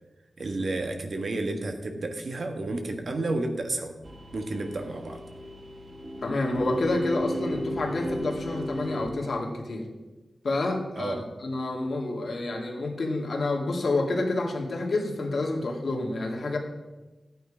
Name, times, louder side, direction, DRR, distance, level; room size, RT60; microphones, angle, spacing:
voice 1, 0.4-3.9 4.3-5.2 11.0-11.2, right 2 dB, 55° right, 5 dB, 1.5 m, -31 dB
sound 1, 4.0-9.1, right 1 dB, 30° right, 1.3 m, -35 dB
voice 2, 6.2-9.9 10.4-16.6, left 2 dB, 60° left, 0 dB, 2.3 m, -28 dB
14.0 x 9.2 x 5.0 m, 1.1 s
wide cardioid pair, 150°, 0 cm